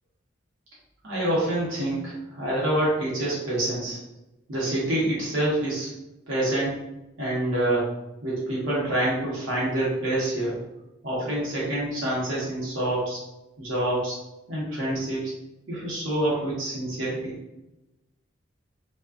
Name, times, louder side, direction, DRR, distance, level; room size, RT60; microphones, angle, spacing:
voice 1, 1.0-4.0 4.5-5.9 6.3-6.7 7.2-7.9 8.2-10.6 11.0-13.2 13.6-14.1 14.5-15.3 15.7-17.3, right 1 dB, 80° right, -7 dB, 0.9 m, -26 dB
2.4 x 2.2 x 2.3 m, 0.94 s
head